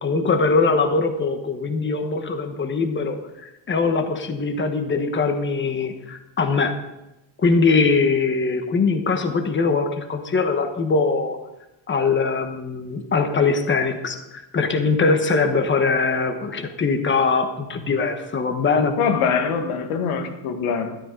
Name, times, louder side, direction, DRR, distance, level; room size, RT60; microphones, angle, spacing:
voice 1, 0.0-3.2 3.4-6.7 7.4-11.4 11.9-18.9, left 4 dB, 25° left, 6 dB, 1.1 m, -22 dB
voice 2, 19.0-21.0, left 6 dB, 80° left, 6 dB, 1.7 m, -23 dB
13.0 x 12.5 x 3.9 m, 0.95 s
cardioid pair, 175°, 49 cm